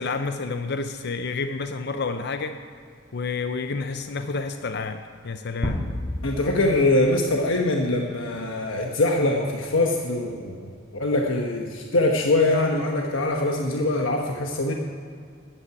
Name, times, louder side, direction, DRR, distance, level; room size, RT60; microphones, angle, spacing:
voice 1, 0.0-2.6 3.1-5.8, left 4 dB, 55° left, 8 dB, 0.6 m, -29 dB
sound 1, 5.6-7.6, left 1 dB, 25° left, 1.6 m, -31 dB
voice 2, 6.2-14.7, left 2 dB, 70° left, 1 dB, 1.2 m, -23 dB
11.5 x 9.0 x 9.8 m, 2.2 s
head